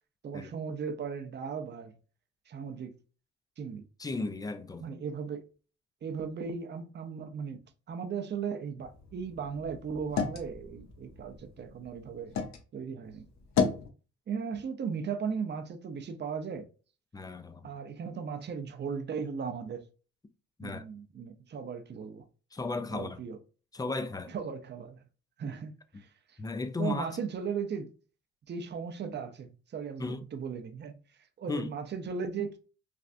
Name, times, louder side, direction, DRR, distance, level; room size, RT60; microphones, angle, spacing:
voice 1, 0.2-1.9 2.5-3.0 3.6-3.8 4.8-5.5 6.0-7.6 7.9-12.3 12.7-13.3 14.3-16.7 17.6-19.9 20.6-22.2 22.9-23.4 24.3-25.0 25.4-26.4 26.8-27.9 28.5-31.0 31.4-32.6, right 6 dB, 35° right, 0.6 m, -37 dB
voice 2, 4.0-4.8 17.1-17.7 20.6-20.9 22.5-23.2 23.7-24.3 26.4-27.1 30.0-30.2 31.5-31.7, left 3 dB, 15° left, 0.4 m, -35 dB
sound 1, 8.8-12.6 13.0-13.9, left 5 dB, 65° left, 0.7 m, -34 dB
3.3 x 2.4 x 2.5 m
cardioid pair, 90°, 30 cm